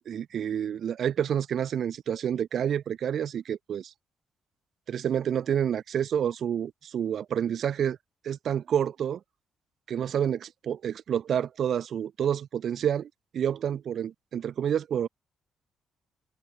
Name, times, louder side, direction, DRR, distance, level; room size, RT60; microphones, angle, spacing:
voice 1, 0.1-3.9 4.9-8.0 8.2-9.2 9.9-13.1 13.3-15.1, right 9 dB, 60° right, 0.6 m, -28 dB
cardioid pair, 90°, 0 cm